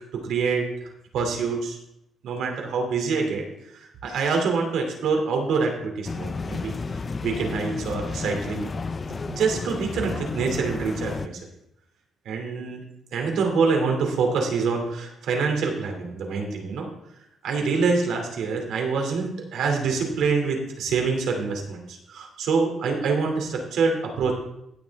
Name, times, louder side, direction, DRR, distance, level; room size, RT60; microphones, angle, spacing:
voice 1, 0.2-0.7 1.1-1.8 2.2-3.4 3.7-6.7 7.2-8.7 9.1-11.4 12.3-12.8 13.1-16.9 17.4-24.3, right 4 dB, 80° right, 2 dB, 2.6 m, -25 dB
sound 1, 6.0-11.3, left 4 dB, 35° left, 0.4 m, -32 dB
16.0 x 7.2 x 3.5 m, 0.82 s
cardioid pair, 90°, 0 cm